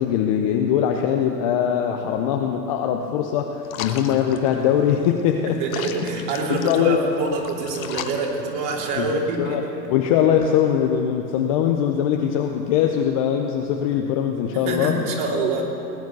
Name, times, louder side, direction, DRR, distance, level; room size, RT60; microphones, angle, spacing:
voice 1, 0.0-5.6 6.6-7.0 9.0-9.6 9.9-15.0, left 9 dB, 25° left, 3 dB, 0.4 m, -21 dB
sound 1, 3.7-9.1, left 9 dB, 55° left, 1.2 m, -37 dB
voice 2, 5.5-9.8 14.6-15.6, right 3 dB, 40° right, -1 dB, 3.1 m, -26 dB
19.0 x 9.4 x 7.1 m, 2.8 s
hypercardioid pair, 120°, 50 cm